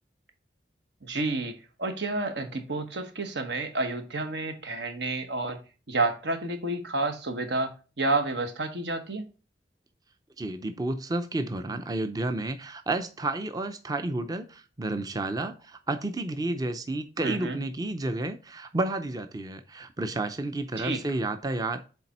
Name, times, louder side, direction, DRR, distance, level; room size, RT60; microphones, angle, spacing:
voice 1, 1.0-5.6 5.9-9.3 17.2-17.6 20.8-21.0, right 2 dB, 80° right, 1.2 m, -30 dB
voice 2, 10.4-21.8, right 2 dB, 20° right, 0.5 m, -31 dB
6.9 x 4.1 x 4.1 m
head